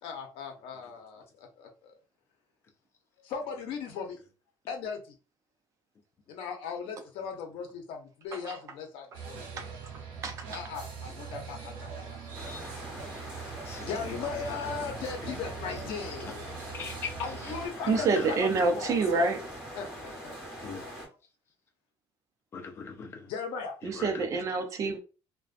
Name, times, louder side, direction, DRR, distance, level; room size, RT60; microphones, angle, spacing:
voice 1, 0.0-1.2 1.6-1.9 3.2-4.2 4.7-5.1 6.3-9.6 10.5-12.3 13.5-16.5 17.2-19.0 19.7-20.4 23.3-23.8, left 6 dB, 80° left, 0.7 m, -38 dB
sound 1, 9.1-17.7, right 6 dB, 85° right, 0.9 m, -42 dB
sound 2, 12.3-21.1, equal, ahead, 1.2 m, -43 dB
voice 2, 16.7-17.1 17.9-18.3 20.6-20.8 22.5-23.2 24.0-24.1, left 5 dB, 30° left, 0.5 m, -39 dB
voice 3, 17.9-19.5 23.8-25.0, right 4 dB, 35° right, 0.4 m, -27 dB
2.4 x 2.2 x 2.4 m
cardioid pair, 170°, 9 cm